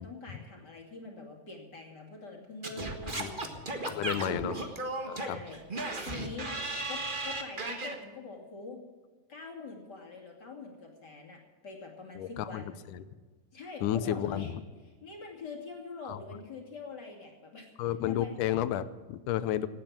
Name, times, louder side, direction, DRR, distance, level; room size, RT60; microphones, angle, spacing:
voice 1, 0.0-4.3 5.1-5.6 6.0-6.5 6.9-8.8 9.3-12.8 13.5-14.5 14.8-17.6 18.1-18.4, left 4 dB, 35° left, 1 dB, 2.8 m, -44 dB
Singing / Scratching (performance technique), 2.6-7.9, right 2 dB, 35° right, 0.8 m, -35 dB
voice 2, 3.9-4.6 5.0-5.4 12.2-12.6 12.9-13.0 13.8-14.6 16.1-16.2 17.8-19.7, left 11 dB, 90° left, 14 dB, 2.3 m, -32 dB
18.0 x 8.9 x 7.5 m, 1.4 s
omnidirectional pair, 3.6 m